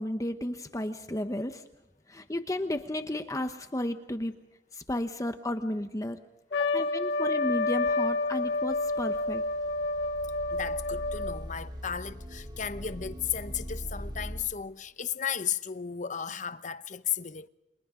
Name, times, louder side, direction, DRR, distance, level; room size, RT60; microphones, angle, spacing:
voice 1, 0.0-1.6 2.1-4.3 4.7-6.2 6.7-9.4, left 1 dB, 20° left, 1.0 m, -33 dB
Trumpet, 6.5-11.5, left 3 dB, 80° left, 1.6 m, -29 dB
voice 2, 6.5-6.8 10.5-17.5, left 8 dB, 45° left, 0.9 m, -35 dB
sound 1, 7.6-14.4, equal, 25° right, 3.5 m, -41 dB
29.5 x 26.5 x 3.8 m
head